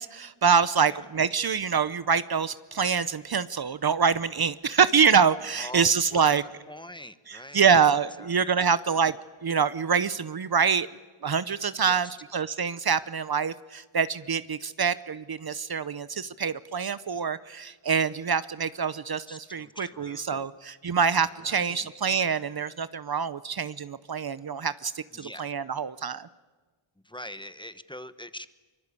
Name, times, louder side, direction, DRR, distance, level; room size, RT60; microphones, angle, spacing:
voice 1, 0.0-6.4 7.3-9.2 9.4-10.9 11.2-26.3, right 6 dB, 50° right, 15 dB, 0.8 m, -25 dB
voice 2, 5.6-6.3 6.7-7.7 8.2-8.3 8.6-8.7 11.8-12.1 19.3-20.5 21.4-21.9 25.1-25.5 27.0-28.5, left 1 dB, 10° left, 12 dB, 1.0 m, -43 dB
24.0 x 23.5 x 8.4 m, 1.3 s
wide cardioid pair, 90°, 49 cm